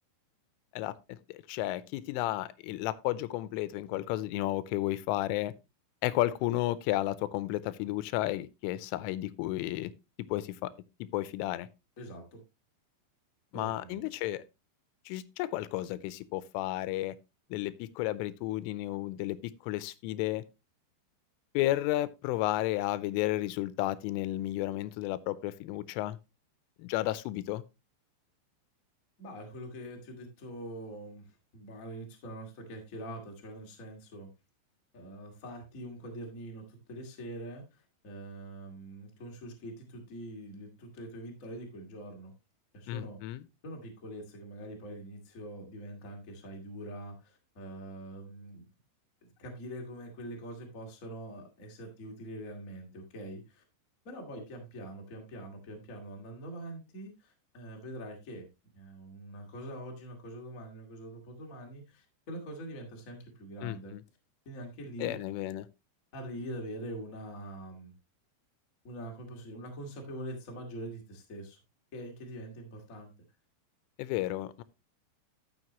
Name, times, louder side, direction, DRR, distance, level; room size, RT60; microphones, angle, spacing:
voice 1, 0.7-5.5 6.0-9.9 10.3-10.7 11.0-11.7 13.5-14.4 15.1-17.2 17.5-19.4 19.6-20.4 21.5-26.2 26.8-27.6 42.9-43.4 63.6-64.0 65.0-65.7 74.0-74.6, left 16 dB, 85° left, 3.1 m, -32 dB
voice 2, 12.0-12.4 13.5-14.0 29.2-34.3 34.9-42.3 42.7-43.2 43.6-48.7 49.2-53.6 54.0-58.5 58.7-63.9 64.4-65.2 66.1-67.9 68.8-71.6 71.9-73.1, right 1 dB, 60° left, 0.8 m, -44 dB
12.5 x 6.9 x 2.9 m
omnidirectional pair, 5.6 m